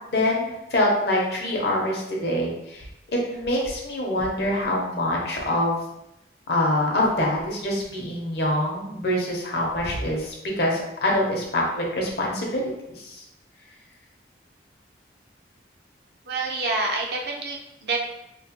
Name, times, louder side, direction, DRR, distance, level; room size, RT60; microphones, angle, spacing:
voice 1, 0.1-5.9 6.5-13.2, left 1 dB, 65° left, -1 dB, 0.7 m, -25 dB
voice 2, 16.3-18.0, right 3 dB, 60° right, 0 dB, 0.5 m, -27 dB
3.0 x 2.0 x 2.8 m, 0.85 s
head